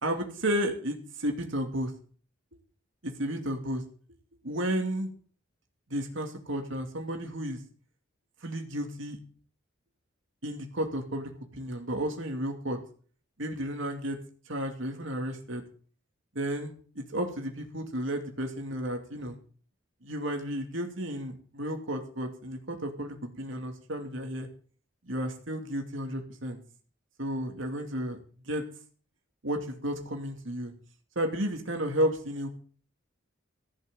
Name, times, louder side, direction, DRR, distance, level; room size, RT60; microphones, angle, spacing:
voice 1, 0.0-1.9 3.0-3.8 4.4-5.1 5.9-7.6 8.4-9.2 10.4-12.8 13.4-14.2 14.5-15.6 16.3-19.4 20.0-24.5 25.0-26.6 27.2-28.2 28.5-28.6 29.4-30.7 31.2-32.5, equal, 70° right, 4 dB, 2.6 m, -32 dB
15.5 x 6.5 x 7.8 m, 0.43 s
head